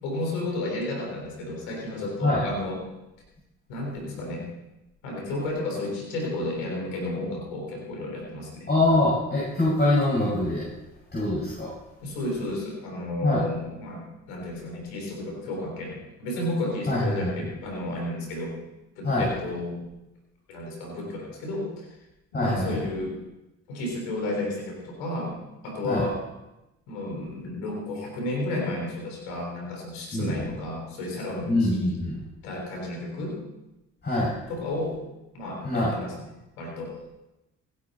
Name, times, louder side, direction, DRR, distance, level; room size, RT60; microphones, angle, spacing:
voice 1, 0.0-2.8 3.7-4.5 5.0-8.7 12.0-18.5 19.0-19.9 20.5-21.9 22.3-23.1 23.7-25.4 25.6-26.2 26.9-31.9 32.4-33.4 34.5-35.0 35.3-36.1 36.6-36.9, left 1 dB, 90° left, 0 dB, 3.7 m, -32 dB
voice 2, 8.7-10.7 11.1-11.7 13.2-13.4 16.9-17.3 19.0-19.3 22.3-22.8 25.8-26.0 30.1-30.5 31.5-32.1 34.0-34.3 35.6-35.9, left 2 dB, 30° left, -6 dB, 6.1 m, -24 dB
16.0 x 11.5 x 4.2 m, 0.96 s
supercardioid pair, 65°, 32 cm